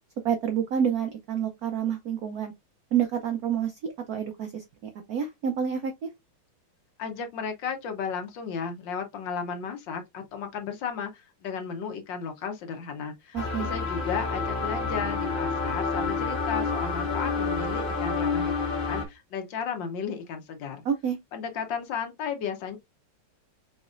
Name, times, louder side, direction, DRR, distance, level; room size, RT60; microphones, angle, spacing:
voice 1, 0.2-2.5 2.9-4.6 5.1-6.1 13.3-13.7 20.8-21.2, right 8 dB, 85° right, 0.8 m, -28 dB
voice 2, 7.0-20.8 21.3-22.8, left 6 dB, 65° left, 1.4 m, -34 dB
sound 1, 13.4-19.0, left 4 dB, 30° left, 1.2 m, -29 dB
5.0 x 3.9 x 2.4 m
omnidirectional pair, 2.4 m